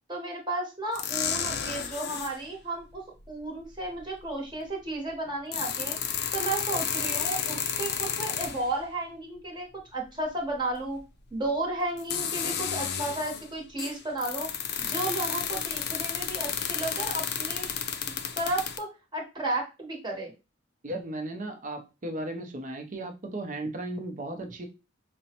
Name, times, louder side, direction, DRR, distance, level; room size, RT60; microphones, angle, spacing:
voice 1, 0.1-6.0 6.3-9.7 9.9-11.0 11.3-14.5 14.8-17.7 18.1-20.3, right 2 dB, 25° right, 1.0 m, -33 dB
sound 1, 1.0-2.4 3.9-4.0 5.3-8.8 11.0-11.1 12.0-13.5 13.8-18.8, left 8 dB, 60° left, 0.4 m, -32 dB
voice 2, 20.8-24.7, right 1 dB, 40° right, 0.6 m, -35 dB
5.2 x 2.1 x 2.8 m
head